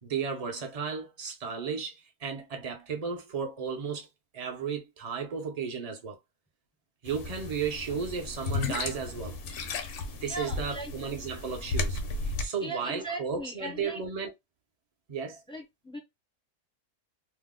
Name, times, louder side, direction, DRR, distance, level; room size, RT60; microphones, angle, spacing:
voice 1, 0.0-4.1 4.3-6.2 7.0-9.4 10.2-14.3 15.1-15.4, right 6 dB, 45° right, 0.4 m, -34 dB
sound 1, 7.1-12.5, left 3 dB, 65° left, 0.9 m, -34 dB
voice 2, 10.2-10.9 12.6-14.0 15.5-16.0, right 2 dB, 5° left, 0.5 m, -38 dB
2.7 x 2.0 x 3.6 m
omnidirectional pair, 1.6 m